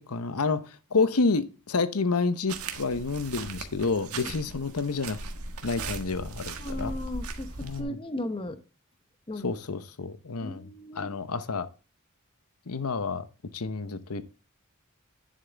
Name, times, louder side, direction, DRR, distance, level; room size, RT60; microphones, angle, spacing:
voice 1, 0.0-5.2 5.6-6.9 7.6-8.0 9.4-10.6 11.0-11.7 12.7-13.3 13.5-14.2, left 4 dB, 85° left, 0.9 m, -29 dB
sound 1, 2.5-7.8, right 3 dB, 85° right, 1.6 m, -38 dB
voice 2, 6.6-8.6 9.3-9.5 10.4-11.2, left 1 dB, 25° left, 0.9 m, -36 dB
10.5 x 7.5 x 3.4 m
head